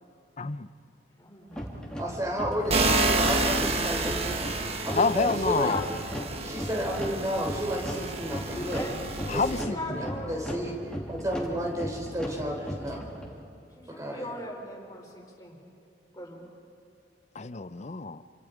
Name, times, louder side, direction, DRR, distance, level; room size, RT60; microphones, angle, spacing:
voice 1, 0.4-0.7 4.9-5.8 9.3-9.7 17.3-18.2, left 4 dB, 40° left, 0.6 m, -27 dB
voice 2, 1.2-1.6 5.4-5.9 8.5-9.0 9.6-10.8 13.7-15.6 16.1-16.4, left 1 dB, 20° left, 4.9 m, -40 dB
sound 1, 1.5-13.4, equal, 5° left, 3.0 m, -38 dB
voice 3, 2.0-4.5 4.9-5.7 6.4-8.9 9.3-10.8 11.1-13.1 13.9-14.3, equal, 20° right, 3.9 m, -32 dB
sound 2, 2.7-9.6, right 3 dB, 35° right, 1.3 m, -30 dB
28.0 x 26.0 x 5.1 m
head